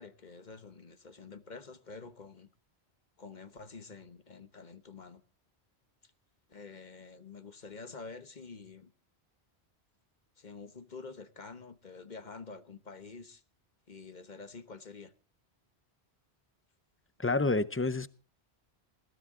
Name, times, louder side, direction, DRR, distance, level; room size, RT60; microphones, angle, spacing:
voice 1, 0.0-2.5 3.2-5.2 6.0-6.1 6.5-8.9 10.4-13.4 13.9-15.1, left 4 dB, 45° left, 1.3 m, -48 dB
voice 2, 17.2-18.1, left 3 dB, 15° left, 0.5 m, -28 dB
20.5 x 15.5 x 3.7 m
omnidirectional pair, 1.1 m